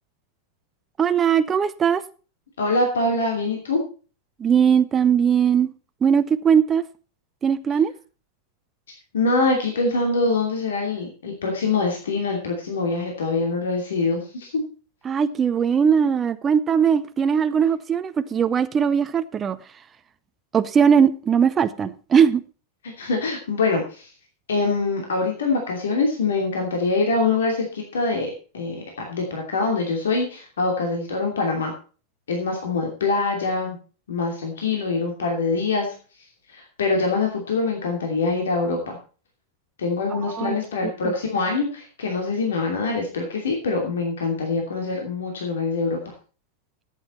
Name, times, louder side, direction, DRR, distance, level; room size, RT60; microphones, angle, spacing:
voice 1, 1.0-2.0 4.4-5.7 6.0-6.8 7.4-7.9 15.0-19.6 20.5-22.4 40.1-40.6 41.0-41.1, right 7 dB, 20° right, 0.7 m, -19 dB
voice 2, 2.6-3.8 9.1-14.6 22.8-24.1 24.5-31.7 32.3-33.8 34.1-35.9 36.5-39.0 39.8-46.0, left 3 dB, 65° left, 2.8 m, -24 dB
14.0 x 9.1 x 4.4 m
figure-of-eight pair, 90°, 0 cm